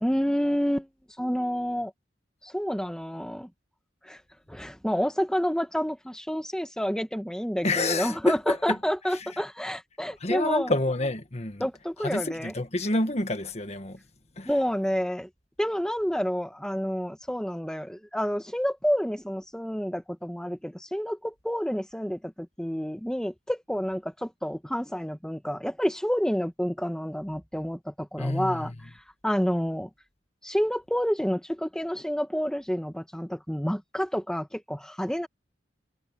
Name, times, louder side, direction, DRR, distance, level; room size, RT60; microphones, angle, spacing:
voice 1, 0.0-0.9 1.2-1.9 2.4-3.5 4.0-4.2 4.5-10.7 11.6-12.5 14.4-15.3 15.6-28.7 29.2-29.9 30.4-35.3, equal, 5° left, 1.2 m, -29 dB
voice 2, 7.6-8.8 10.2-11.7 12.0-14.0 14.4-14.5 28.2-28.7, left 2 dB, 35° left, 1.6 m, -28 dB
head